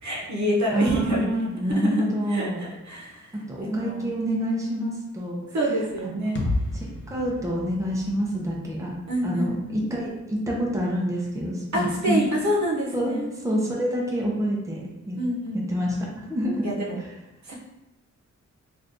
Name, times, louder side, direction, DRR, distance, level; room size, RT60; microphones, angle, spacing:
voice 1, 0.0-1.2 1.7-2.0 2.3-3.3 3.6-4.0 5.5-6.4 9.1-9.8 11.7-13.3 15.2-15.6 16.6-17.0 17.4-17.5, equal, 65° right, -3 dB, 0.8 m, -27 dB
voice 2, 0.7-2.6 3.3-5.4 6.0-6.4 6.7-8.9 9.2-12.2 12.9-13.2 13.4-15.2 15.5-16.7, equal, 10° right, -3 dB, 0.7 m, -27 dB
sound 1, 6.4-10.2, left 2 dB, 40° left, 0.6 m, -33 dB
2.7 x 2.5 x 3.5 m, 0.97 s
wide cardioid pair, 100°, 31 cm